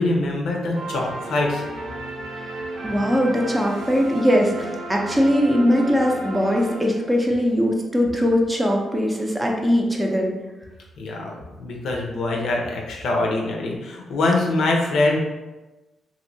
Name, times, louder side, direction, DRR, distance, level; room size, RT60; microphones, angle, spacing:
voice 1, 0.0-1.6 11.0-15.2, left 2 dB, 80° left, 0 dB, 0.6 m, -23 dB
sound 1, 0.7-7.3, right 2 dB, 90° right, 0.5 m, -34 dB
voice 2, 2.8-10.3, equal, 10° right, 0 dB, 0.5 m, -20 dB
3.0 x 2.6 x 2.6 m, 1.1 s
cardioid pair, 105°, 0 cm